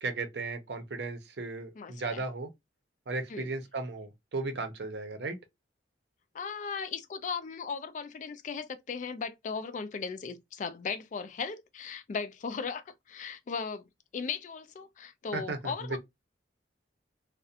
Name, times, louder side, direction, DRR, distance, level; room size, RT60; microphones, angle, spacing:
voice 1, 0.0-2.5 3.1-5.4 15.3-16.0, right 3 dB, 65° right, 0.6 m, -35 dB
voice 2, 1.8-2.2 3.3-3.5 6.3-13.8 14.1-16.0, left 5 dB, 45° left, 0.3 m, -37 dB
2.4 x 2.1 x 2.7 m
head